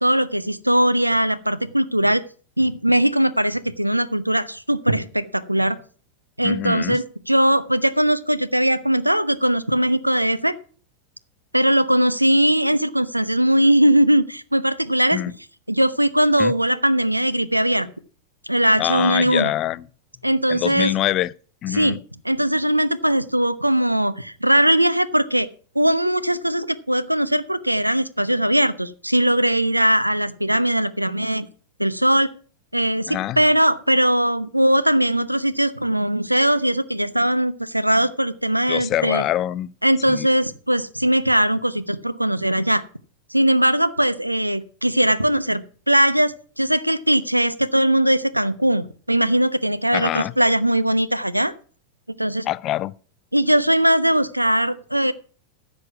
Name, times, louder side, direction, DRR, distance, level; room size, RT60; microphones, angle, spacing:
voice 1, 0.0-2.2 2.6-5.8 6.4-10.5 11.5-15.2 15.7-17.9 18.5-19.5 20.2-21.0 21.7-22.0 22.2-25.5 25.7-31.5 31.8-32.3 32.7-39.2 39.8-42.8 43.3-45.6 45.9-51.5 52.2-52.5 53.3-55.1, right 1 dB, 90° right, 0.8 m, -20 dB
voice 2, 6.4-7.0 15.1-15.3 16.4-16.5 18.8-19.8 20.5-21.3 21.6-22.0 33.1-33.4 38.7-39.7 40.1-40.3 49.9-50.3 52.5-52.9, left 13 dB, 35° left, 0.5 m, -24 dB
15.0 x 6.3 x 6.0 m
figure-of-eight pair, 90°, 0 cm